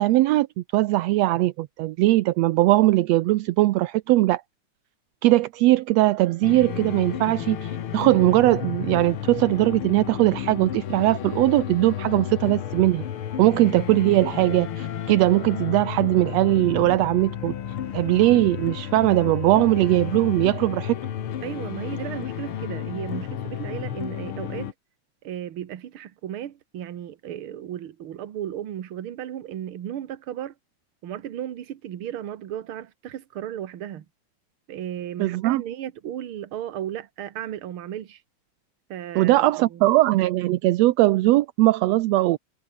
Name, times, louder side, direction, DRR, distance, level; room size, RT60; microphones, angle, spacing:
voice 1, 0.0-4.4 5.2-13.0 13.4-17.5 17.9-20.9 35.2-35.6 39.1-42.4, right 17 dB, 75° right, 1.5 m, -20 dB
sound 1, 6.4-24.7, left 9 dB, 55° left, 1.8 m, -32 dB
voice 2, 21.4-24.7 25.2-30.5 31.0-34.1 34.7-38.2 38.9-39.9, right 11 dB, 55° right, 1.8 m, -35 dB
omnidirectional pair, 3.6 m